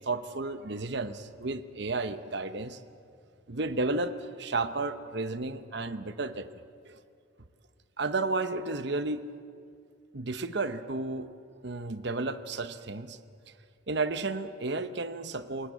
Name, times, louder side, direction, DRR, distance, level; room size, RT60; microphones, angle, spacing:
voice 1, 0.0-2.8 3.5-6.5 6.9-7.0 8.0-9.2 10.1-11.3 11.6-13.2 13.9-15.7, right 3 dB, 55° right, 11 dB, 1.0 m, -32 dB
28.0 x 18.5 x 8.5 m, 2.4 s
head